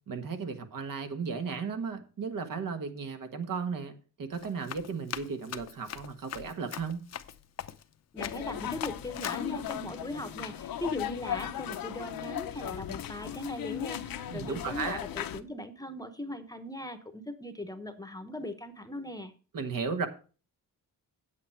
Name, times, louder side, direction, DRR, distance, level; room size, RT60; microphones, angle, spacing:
voice 1, 0.1-7.0 14.3-15.0 19.5-20.1, right 5 dB, 65° right, 7 dB, 1.5 m, -35 dB
Run, 4.3-7.9 8.2-8.5 8.8-9.7, left 9 dB, 45° left, 0.7 m, -41 dB
voice 2, 8.1-19.3, left 1 dB, 10° left, 9 dB, 0.9 m, -39 dB
sound 1, 8.2-15.4, left 10 dB, 75° left, 0.8 m, -37 dB
8.5 x 8.4 x 4.5 m, 0.36 s
wide cardioid pair, 155°, 35 cm